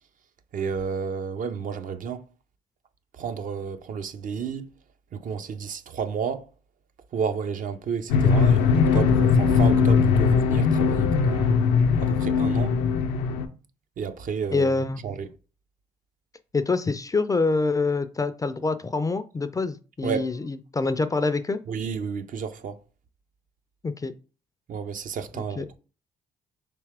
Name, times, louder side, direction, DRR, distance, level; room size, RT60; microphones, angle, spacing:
voice 1, 0.5-2.2 3.1-4.7 5.1-6.5 7.1-11.5 12.0-12.8 14.0-14.7 15.0-15.3 20.0-20.4 21.7-22.8 24.7-25.8, right 6 dB, 50° right, 0.5 m, -31 dB
sound 1, 8.1-13.5, left 5 dB, 85° left, 0.5 m, -20 dB
voice 2, 14.5-15.0 16.5-21.6 23.8-24.1 25.3-25.6, left 3 dB, 20° left, 0.3 m, -26 dB
3.4 x 2.9 x 3.4 m
supercardioid pair, 60°, 17 cm